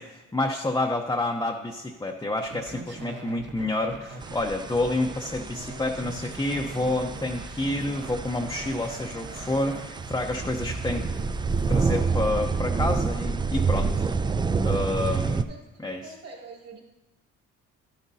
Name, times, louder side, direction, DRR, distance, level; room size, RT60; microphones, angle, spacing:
voice 1, 0.0-11.0 11.7-14.1 14.6-15.5 15.8-16.1, left 2 dB, 10° left, 1 dB, 0.7 m, -29 dB
sound 1, 2.4-11.2, right 3 dB, 40° right, 1.0 m, -42 dB
sound 2, 4.2-15.4, right 4 dB, 15° right, 0.3 m, -29 dB
sound 3, 6.0-11.8, right 4 dB, 80° right, 1.1 m, -50 dB
voice 2, 16.0-16.8, right 3 dB, 55° right, -1 dB, 2.6 m, -43 dB
12.0 x 10.0 x 2.7 m, 1.1 s
cardioid pair, 90°, 30 cm